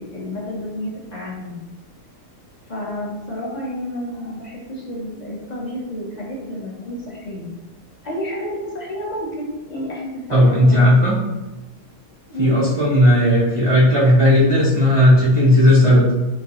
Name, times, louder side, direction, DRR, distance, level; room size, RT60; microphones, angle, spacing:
voice 1, 0.0-1.6 2.7-7.5 8.0-11.0 12.3-12.6, equal, 35° left, -4 dB, 0.8 m, -30 dB
voice 2, 10.3-11.2 12.4-16.1, left 1 dB, 40° right, -6 dB, 0.4 m, -14 dB
6.5 x 2.3 x 2.9 m, 1.1 s
omnidirectional pair, 1.7 m